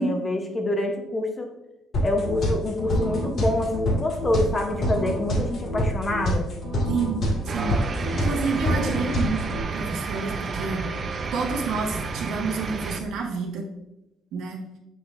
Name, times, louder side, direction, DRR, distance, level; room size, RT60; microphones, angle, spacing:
voice 1, 0.0-1.5 2.0-6.4, left 1 dB, 20° left, 3 dB, 0.8 m, -26 dB
sound 1, 1.9-9.6, equal, 45° left, 1.8 m, -27 dB
voice 2, 6.9-7.2 7.4-7.8 8.0-10.9 11.3-13.6 14.3-14.6, right 4 dB, 70° right, 1 dB, 1.4 m, -29 dB
sound 2, 7.5-13.0, right 4 dB, 30° right, 0.6 m, -31 dB
7.7 x 6.6 x 2.5 m, 0.93 s
cardioid pair, 155°, 0 cm